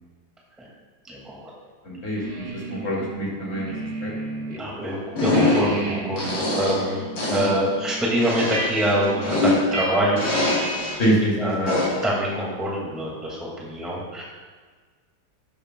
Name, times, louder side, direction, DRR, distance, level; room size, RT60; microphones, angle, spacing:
voice 1, 1.1-1.4 4.5-10.3 11.4-14.2, equal, ahead, -4 dB, 1.7 m, -25 dB
voice 2, 1.8-4.1 7.4-7.6 11.0-11.7, equal, 30° left, -5 dB, 2.6 m, -25 dB
sound 1, 2.1-4.6 4.9-11.1, right 2 dB, 55° right, 1.5 m, -34 dB
sound 2, 5.2-5.8 6.2-6.9 7.2-7.6 8.2-9.8 10.2-11.1 11.7-12.1, left 2 dB, 85° left, 3.9 m, -24 dB
12.5 x 10.0 x 2.2 m, 1.5 s
omnidirectional pair, 2.2 m